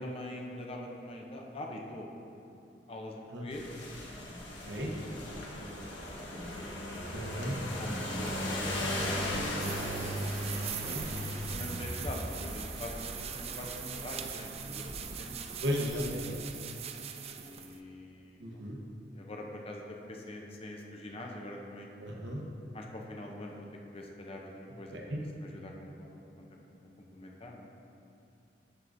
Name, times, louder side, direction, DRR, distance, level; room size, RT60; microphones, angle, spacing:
voice 1, 0.0-2.6 2.9-3.7 5.0-6.8 7.8-10.2 11.3-15.3 17.3-18.6 19.1-21.9 22.7-23.7 23.9-24.5 24.8-26.8 27.1-27.7, left 1 dB, 35° left, 0 dB, 0.7 m, -44 dB
sound 1, 3.5-16.1, left 1 dB, 90° left, 1.3 m, -38 dB
voice 2, 7.1-7.5 10.5-11.0 15.6-16.3 18.4-18.8 22.0-22.4 24.9-25.0, equal, 85° right, -1 dB, 1.0 m, -35 dB
sound 2, 9.6-17.8, right 8 dB, 35° right, 0.3 m, -41 dB
11.5 x 4.8 x 2.6 m, 2.7 s
head